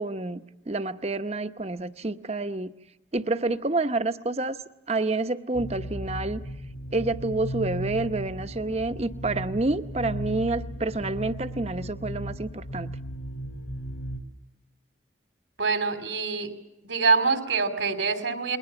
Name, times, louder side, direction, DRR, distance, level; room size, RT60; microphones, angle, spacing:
voice 1, 0.0-2.7 3.1-4.6 4.9-6.4 6.9-12.9, right 2 dB, 35° right, 10 dB, 0.8 m, -28 dB
sound 1, 5.5-14.2, right 1 dB, 70° left, 3.0 m, -36 dB
voice 2, 15.6-16.5 16.8-18.6, right 4 dB, 85° right, 8 dB, 3.0 m, -25 dB
29.0 x 21.5 x 6.9 m, 0.89 s
head